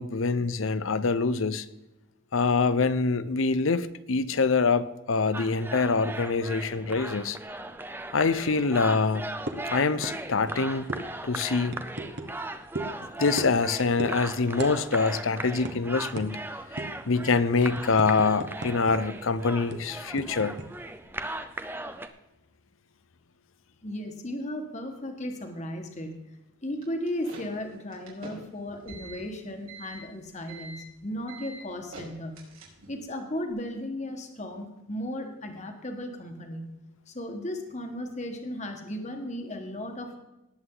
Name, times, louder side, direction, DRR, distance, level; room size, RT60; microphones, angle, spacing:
voice 1, 0.0-1.7 2.3-7.4 8.1-9.2 9.7-10.9 11.2-11.8 13.2-16.4 17.1-20.6, left 4 dB, 75° left, 15 dB, 0.7 m, -25 dB
sound 1, 5.3-22.1, right 2 dB, 10° right, 0.6 m, -38 dB
sound 2, 9.5-9.7 10.0-10.2 10.4-10.6 10.9-11.0 11.7-12.3 12.7-12.9 13.4-13.6 14.0-14.2 14.6-14.7 15.0-15.2 15.6-15.7 16.2-16.3 16.8-17.0 17.4-18.9 19.2-19.3 19.7-20.7, right 2 dB, 55° right, 1.2 m, -34 dB
voice 2, 23.8-26.2 26.6-32.4 32.9-36.8 37.1-40.2, left 1 dB, 35° left, 4 dB, 1.5 m, -35 dB
sound 3, 26.8-33.1, right 2 dB, 90° right, 4.1 m, -45 dB
19.0 x 7.9 x 3.9 m, 0.96 s
head